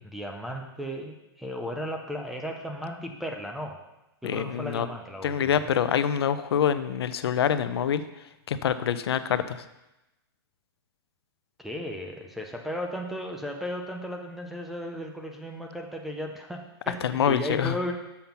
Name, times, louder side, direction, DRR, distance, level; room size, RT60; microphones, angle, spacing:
voice 1, 0.0-3.8 4.2-5.7 11.6-17.9, equal, ahead, 2 dB, 0.4 m, -35 dB
voice 2, 4.2-4.9 5.2-8.0 8.5-9.6 17.0-17.8, left 8 dB, 75° left, 12 dB, 0.6 m, -25 dB
7.1 x 5.6 x 5.8 m, 0.95 s
hypercardioid pair, 170°, 13 cm